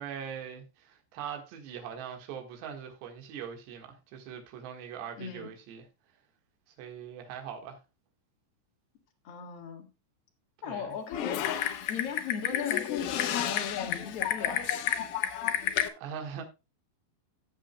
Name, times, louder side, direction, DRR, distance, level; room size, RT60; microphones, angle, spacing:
voice 1, 0.0-5.9 6.8-7.8 10.7-11.0 15.9-16.4, right 8 dB, 75° right, 3.6 m, -41 dB
voice 2, 5.2-5.5 9.2-9.9 10.6-11.6 11.9-14.7, left 7 dB, 60° left, 1.6 m, -37 dB
Typing, 11.1-15.9, left 11 dB, 75° left, 2.2 m, -31 dB
14.5 x 7.4 x 2.2 m
omnidirectional pair, 5.2 m